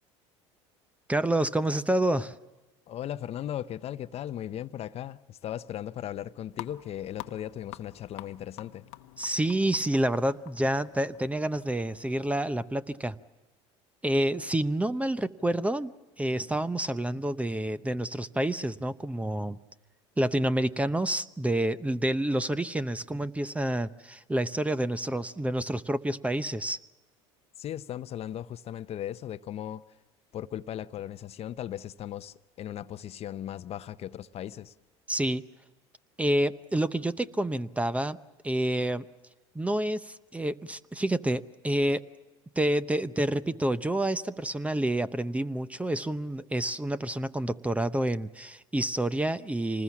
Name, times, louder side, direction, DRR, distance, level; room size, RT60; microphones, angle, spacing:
voice 1, 1.1-2.4 9.2-13.2 14.0-19.6 20.2-26.8 35.1-35.4 36.2-38.2 38.4-39.0 39.5-42.0 42.6-49.8, right 1 dB, 10° right, 0.8 m, -28 dB
voice 2, 2.9-8.9 27.6-29.8 30.3-34.7, left 11 dB, 45° left, 0.7 m, -37 dB
sound 1, 6.5-12.6, left 17 dB, 80° left, 0.9 m, -48 dB
26.0 x 20.0 x 7.2 m
supercardioid pair, 90°, 15 cm